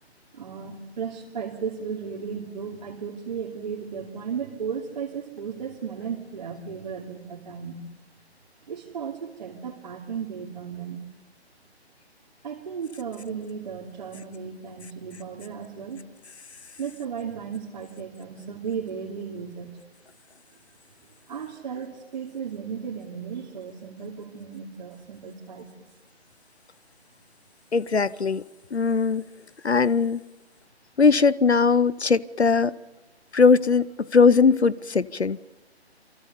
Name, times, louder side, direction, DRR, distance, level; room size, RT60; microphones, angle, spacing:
voice 1, 0.3-7.8 8.7-11.0 12.4-16.0 16.8-19.7 21.3-25.9, right 6 dB, 45° right, 2.8 m, -35 dB
voice 2, 27.7-28.4 28.7-29.2 29.6-30.2 31.0-32.7 33.3-35.4, left 5 dB, 75° left, 0.9 m, -20 dB
28.0 x 24.5 x 7.0 m
figure-of-eight pair, 140°, 33 cm